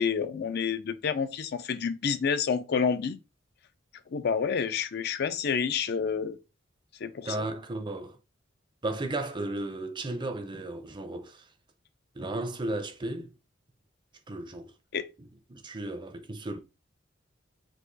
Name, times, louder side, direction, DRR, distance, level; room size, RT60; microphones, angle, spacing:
voice 1, 0.0-3.2 4.1-6.4 7.0-7.5 14.9-15.0, left 6 dB, 60° left, 0.4 m, -29 dB
voice 2, 7.2-8.2 8.8-11.5 12.1-13.3 14.3-14.7 15.2-16.6, right 2 dB, 25° right, 0.6 m, -35 dB
4.7 x 2.5 x 3.9 m
head